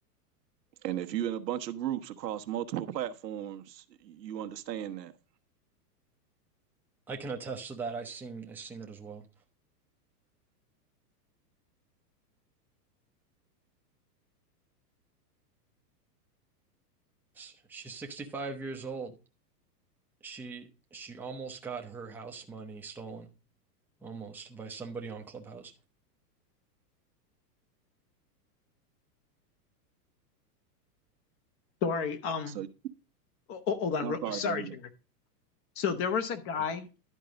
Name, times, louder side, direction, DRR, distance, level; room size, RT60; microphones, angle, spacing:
voice 1, 0.8-5.1 32.5-32.7 34.0-34.7, right 11 dB, 90° right, 1.2 m, -35 dB
voice 2, 7.1-9.3 17.3-19.1 20.2-23.3 24.0-25.7, right 4 dB, 5° right, 0.7 m, -40 dB
voice 3, 31.8-32.6 33.5-34.7 35.8-36.9, left 6 dB, 30° left, 0.9 m, -31 dB
11.0 x 4.7 x 5.1 m
supercardioid pair, 145°, 48 cm